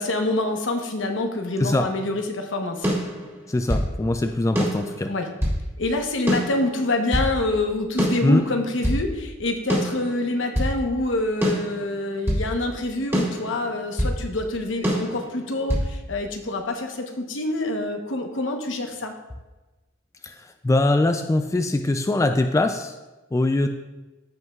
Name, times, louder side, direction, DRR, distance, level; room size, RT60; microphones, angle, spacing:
voice 1, 0.0-2.9 5.1-5.3 5.8-19.1, left 2 dB, 70° left, 4 dB, 1.0 m, -26 dB
sound 1, 2.8-3.9 4.5-5.6 6.3-7.3 8.0-9.0 9.7-10.8 11.4-12.5 13.1-14.2 14.8-15.9, equal, 15° right, 2.3 m, -25 dB
voice 2, 3.5-5.1 8.2-8.4 20.2-22.9 23.3-23.7, left 2 dB, 15° left, 7 dB, 0.3 m, -22 dB
15.0 x 5.4 x 2.4 m, 1.1 s
head